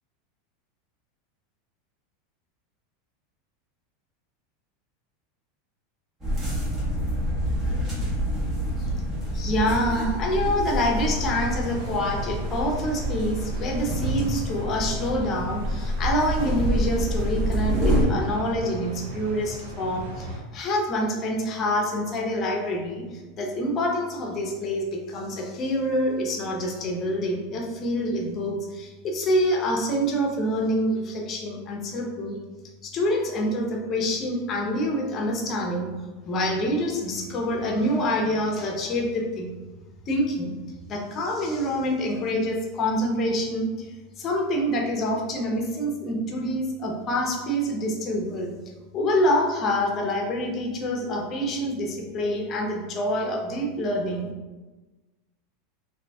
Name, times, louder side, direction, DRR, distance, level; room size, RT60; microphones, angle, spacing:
sound 1, 6.2-18.0, equal, 25° right, 1.2 m, -27 dB
voice 1, 9.3-32.4 32.8-35.9 36.2-39.5 40.1-40.5 40.9-43.9 44.2-48.5 48.9-54.3, equal, 35° left, 1 dB, 0.6 m, -26 dB
sound 2, 10.9-20.4, right 2 dB, 80° right, 0.5 m, -37 dB
3.7 x 2.7 x 2.3 m, 1.2 s
supercardioid pair, 135°, 0 cm